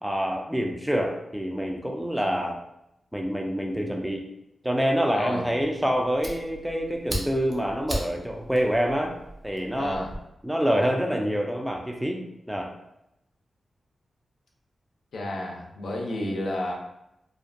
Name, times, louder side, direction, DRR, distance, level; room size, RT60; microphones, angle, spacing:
voice 1, 0.0-2.6 3.1-4.2 4.6-9.1 9.4-10.0 10.4-12.7, equal, 5° right, 1 dB, 0.4 m, -26 dB
voice 2, 5.1-5.4 9.8-10.1 15.1-16.7, left 1 dB, 85° left, -1 dB, 0.5 m, -31 dB
Fire, 5.6-10.2, right 1 dB, 45° right, 0.6 m, -37 dB
2.5 x 2.1 x 2.5 m, 0.84 s
cardioid pair, 65°, 0 cm